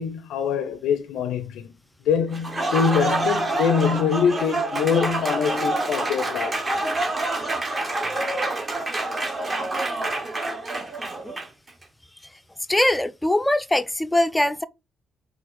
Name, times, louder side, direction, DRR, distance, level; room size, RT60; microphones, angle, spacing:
voice 1, 0.0-1.7 2.1-6.6, left 6 dB, 85° left, 0.4 m, -24 dB
Applause, 2.3-11.7, right 2 dB, 30° right, 1.0 m, -27 dB
voice 2, 12.7-14.6, left 1 dB, 10° left, 0.4 m, -22 dB
3.7 x 2.4 x 4.2 m
cardioid pair, 90°, 0 cm